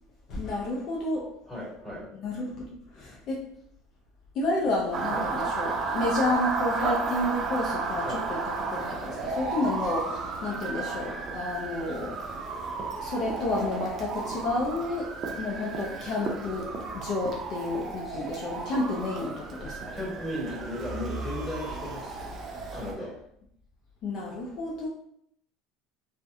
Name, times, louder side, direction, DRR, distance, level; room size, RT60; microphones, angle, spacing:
voice 1, 0.3-1.3 2.2-2.6 2.9-3.5 4.3-12.7 13.0-19.8 24.0-24.9, left 2 dB, 55° left, -3 dB, 0.5 m, -31 dB
voice 2, 1.5-2.1 5.1-5.3 8.0-8.2 18.0-18.2 19.9-22.3 22.7-23.1, left 1 dB, 10° left, -7 dB, 1.4 m, -36 dB
Motor vehicle (road) / Siren, 4.9-22.9, right 4 dB, 40° right, 0.5 m, -33 dB
2.6 x 2.1 x 2.3 m, 0.71 s
supercardioid pair, 100°, 0 cm